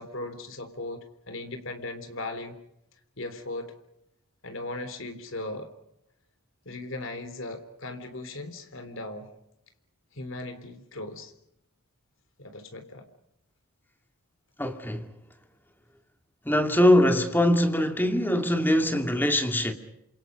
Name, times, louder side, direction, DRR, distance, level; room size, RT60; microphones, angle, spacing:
voice 1, 0.0-2.6 3.2-3.7 4.4-5.7 6.7-9.3 10.1-11.3 12.4-13.1, left 2 dB, 60° left, 3.6 m, -38 dB
voice 2, 14.6-15.1 16.4-19.7, left 1 dB, 10° left, 2.4 m, -22 dB
29.0 x 27.0 x 5.2 m
head